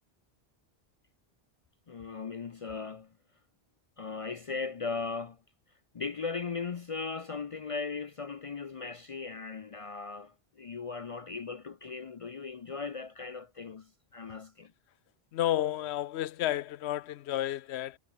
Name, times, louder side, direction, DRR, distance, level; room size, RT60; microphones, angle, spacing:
voice 1, 1.9-3.1 4.0-5.4 5.9-14.7, left 4 dB, 45° left, 0.5 m, -38 dB
voice 2, 15.3-18.0, left 13 dB, 90° left, 0.8 m, -31 dB
omnidirectional pair, 1.1 m